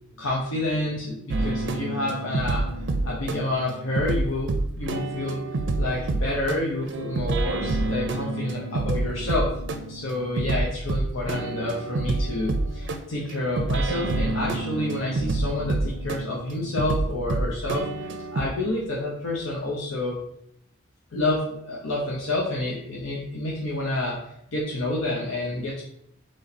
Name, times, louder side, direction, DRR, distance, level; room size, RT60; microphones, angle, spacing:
voice 1, 0.2-2.7 3.0-5.4 5.8-9.6 9.9-20.2 21.1-24.2 24.5-25.8, left 2 dB, 85° left, -4 dB, 0.8 m, -29 dB
sound 1, 1.3-18.5, right 2 dB, 60° right, 0.4 m, -28 dB
4.2 x 3.2 x 4.0 m, 0.75 s
head